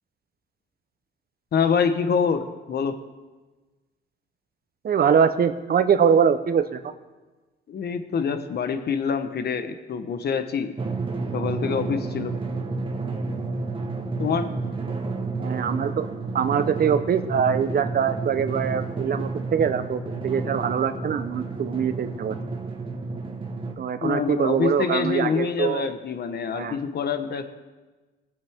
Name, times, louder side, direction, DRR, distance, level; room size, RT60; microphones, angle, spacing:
voice 1, 1.5-3.0 7.7-10.7 11.3-12.3 14.2-14.5 24.0-27.4, left 6 dB, 55° left, 9 dB, 1.1 m, -26 dB
voice 2, 4.8-6.8 15.4-16.1 16.3-22.4 23.8-25.9 26.5-26.8, right 7 dB, 50° right, 9 dB, 0.9 m, -23 dB
Drum, 10.8-23.7, right 3 dB, 25° right, 1.4 m, -31 dB
20.5 x 8.0 x 3.6 m, 1.2 s
cardioid pair, 90°, 20 cm